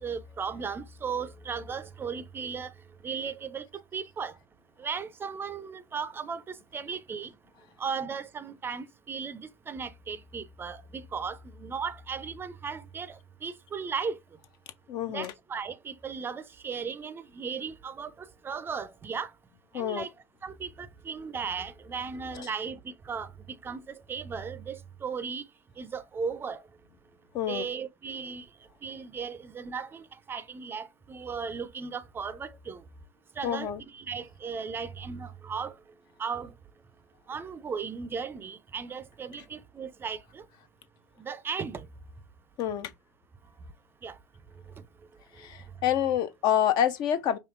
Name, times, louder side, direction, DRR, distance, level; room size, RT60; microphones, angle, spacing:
voice 1, 0.0-2.7 3.0-3.6 3.9-4.3 4.8-7.3 7.8-9.4 9.7-13.2 13.4-14.2 15.1-18.1 18.4-19.3 19.7-20.1 20.4-25.4 25.8-26.6 27.5-28.5 28.8-32.8 33.4-35.7 36.2-36.5 37.3-40.4 41.2-41.9 44.0-44.1, right 6 dB, 25° right, 0.4 m, -36 dB
voice 2, 14.9-15.3 19.7-20.1 22.3-22.5 27.3-27.6 33.4-33.8 42.6-42.9 45.4-47.4, left 10 dB, 50° left, 0.5 m, -27 dB
4.9 x 2.6 x 2.4 m
hypercardioid pair, 75°, 9 cm